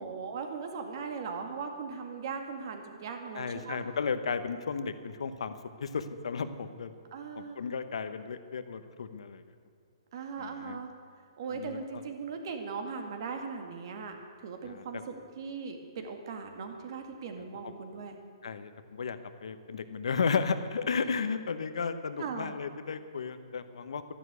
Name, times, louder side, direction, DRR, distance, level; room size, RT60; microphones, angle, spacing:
voice 1, 0.0-3.8 7.1-7.6 10.1-10.9 11.4-14.2 14.4-18.2 22.2-22.6, right 5 dB, 50° right, 5 dB, 2.0 m, -39 dB
voice 2, 3.3-6.9 7.4-9.4 10.4-10.8 11.5-12.0 14.7-14.8 17.6-17.7 18.4-24.1, left 5 dB, 80° left, 10 dB, 1.1 m, -34 dB
12.5 x 11.0 x 8.2 m, 2.2 s
hypercardioid pair, 160°, 3 cm